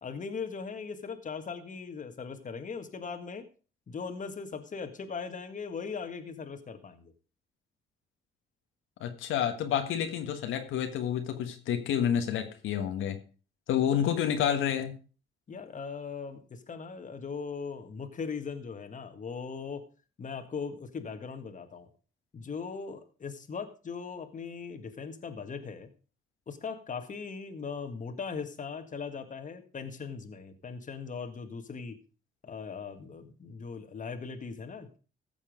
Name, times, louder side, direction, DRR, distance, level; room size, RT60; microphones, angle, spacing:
voice 1, 0.0-3.5 3.9-7.1 15.5-19.8 20.2-21.9 22.3-25.9 26.5-32.0 32.4-35.0, left 5 dB, 40° left, 7 dB, 1.8 m, -39 dB
voice 2, 9.0-13.2 13.7-14.9, left 9 dB, 85° left, 6 dB, 1.6 m, -29 dB
15.0 x 7.3 x 5.2 m, 0.37 s
cardioid pair, 90°, 20 cm